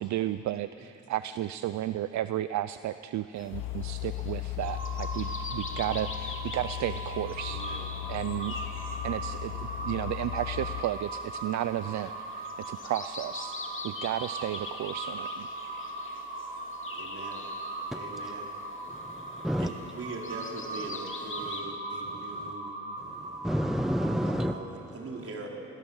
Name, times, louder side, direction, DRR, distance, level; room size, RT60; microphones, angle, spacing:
voice 1, 0.0-7.6 8.1-8.5 9.0-13.6 13.8-15.5, right 13 dB, 70° right, 13 dB, 0.6 m, -33 dB
sound 1, 3.3-21.6, left 4 dB, 40° left, 2.7 m, -45 dB
sound 2, 3.5-10.8, left 15 dB, 75° left, 0.8 m, -37 dB
sound 3, 4.6-24.4, right 2 dB, 30° right, 4.9 m, -39 dB
voice 2, 7.5-7.9 16.9-17.4 17.9-18.5 19.6-22.7 24.2-25.5, right 3 dB, 50° right, -1 dB, 4.5 m, -42 dB
voice 3, 17.9-18.3 18.9-19.7 22.1-22.2 23.0-24.6, equal, ahead, 9 dB, 0.7 m, -31 dB
27.5 x 19.5 x 7.3 m, 2.8 s
cardioid pair, 90°, 30 cm